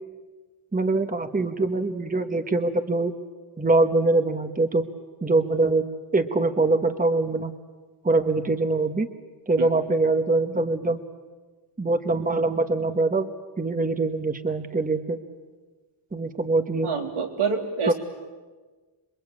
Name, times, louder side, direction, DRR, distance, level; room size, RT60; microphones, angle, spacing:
voice 1, 0.7-3.1 3.6-4.8 5.2-5.9 6.1-7.5 8.0-9.1 9.5-11.0 11.8-13.3 13.6-15.2 16.1-16.9 17.9-18.0, right 3 dB, 15° right, 8 dB, 1.3 m, -23 dB
voice 2, 16.8-17.9, right 5 dB, 85° right, 2 dB, 3.5 m, -26 dB
27.0 x 22.5 x 8.6 m, 1.3 s
wide cardioid pair, 105°, 49 cm